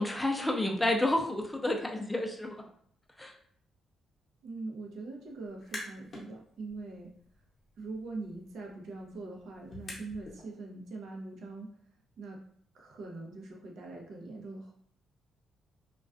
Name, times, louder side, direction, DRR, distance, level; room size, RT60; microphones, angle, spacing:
voice 1, 0.0-2.6 3.2-3.3, left 1 dB, 10° left, 1 dB, 0.4 m, -30 dB
voice 2, 4.4-7.1 7.8-11.7 12.2-12.4 12.7-14.7, right 3 dB, 70° right, 0 dB, 0.6 m, -42 dB
sound 1, 5.5-6.3 6.7-10.4, left 2 dB, 40° left, 0.8 m, -48 dB
2.3 x 2.2 x 2.4 m, 0.63 s
cardioid pair, 90°, 0 cm